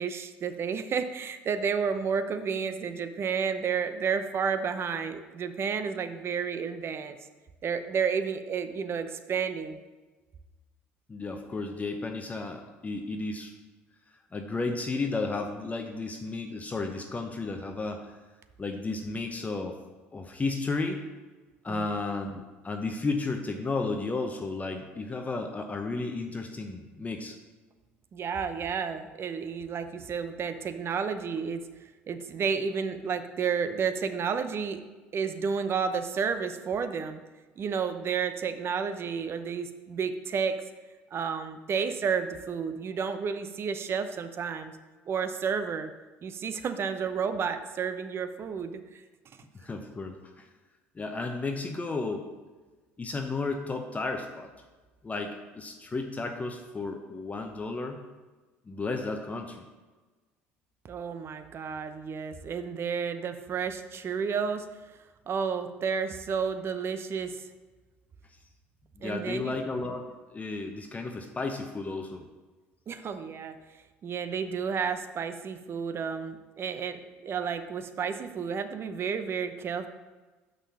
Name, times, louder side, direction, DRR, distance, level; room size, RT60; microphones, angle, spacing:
voice 1, 0.0-7.2 7.6-9.8 21.7-21.9 28.1-31.6 32.1-34.8 35.1-37.2 37.6-40.6 41.1-44.8 45.1-45.9 46.2-49.0 60.9-64.7 65.3-67.4 69.0-69.6 72.9-73.6 74.0-79.9, right 6 dB, 40° right, 9 dB, 0.8 m, -31 dB
voice 2, 11.1-13.5 14.3-18.1 18.6-19.7 20.1-21.0 21.6-27.4 49.5-50.5 50.9-52.3 53.0-54.5 55.0-58.0 58.7-59.6 69.0-72.2, left 3 dB, 25° left, 4 dB, 0.9 m, -33 dB
6.6 x 5.7 x 5.6 m, 1.3 s
hypercardioid pair, 70°, 6 cm